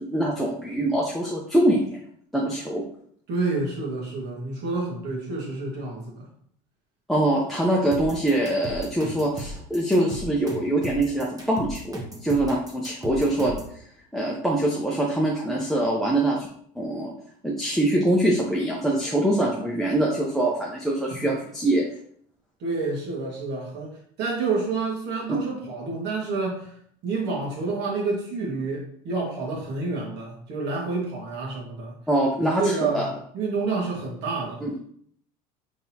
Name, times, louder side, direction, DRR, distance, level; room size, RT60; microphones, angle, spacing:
voice 1, 0.0-2.0 2.3-2.8 7.1-13.6 14.1-16.5 16.8-17.1 17.4-21.8 32.1-33.1 34.6-34.7, right 1 dB, ahead, -3 dB, 0.7 m, -24 dB
voice 2, 3.3-6.3 21.2-21.3 22.6-26.7 27.0-32.0 32.6-34.7, right 3 dB, 55° right, -2 dB, 1.7 m, -29 dB
sound 1, 7.9-13.7, right 1 dB, 15° right, 1.2 m, -36 dB
4.1 x 3.6 x 2.8 m, 0.63 s
hypercardioid pair, 85°, 21 cm